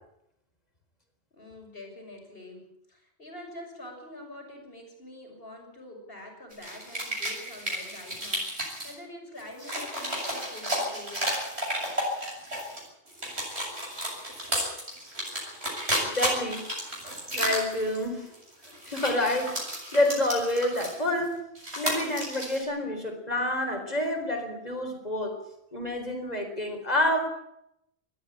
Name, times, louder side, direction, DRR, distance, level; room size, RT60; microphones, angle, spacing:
voice 1, 1.3-11.3, left 1 dB, 60° left, 2 dB, 6.4 m, -45 dB
sound 1, 6.5-8.9 9.4-12.8 13.1-21.3 21.5-22.6, equal, 70° right, 8.1 m, -33 dB
voice 2, 16.0-16.6 17.3-18.3 18.9-19.6 19.9-21.4 21.8-25.4 25.7-27.2, left 1 dB, 35° left, 4 dB, 4.5 m, -28 dB
21.0 x 13.5 x 10.0 m, 0.81 s
omnidirectional pair, 1.1 m